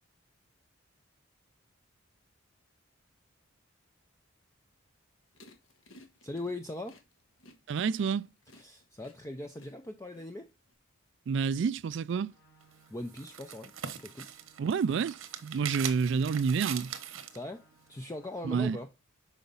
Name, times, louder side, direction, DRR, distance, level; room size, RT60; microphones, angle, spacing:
sound 1, 5.3-10.7, left 1 dB, 75° left, 1.5 m, -57 dB
voice 1, 6.2-7.0 8.5-10.5 12.9-13.7 14.0-14.3 17.3-18.9, left 1 dB, 15° left, 0.5 m, -40 dB
voice 2, 7.7-8.3 11.3-12.3 14.6-16.9 18.4-18.8, right 6 dB, 60° right, 0.3 m, -29 dB
sound 2, 12.2-18.8, right 1 dB, 60° left, 2.5 m, -65 dB
sound 3, 12.6-17.4, right 9 dB, 90° right, 1.1 m, -41 dB
6.9 x 4.9 x 3.9 m
head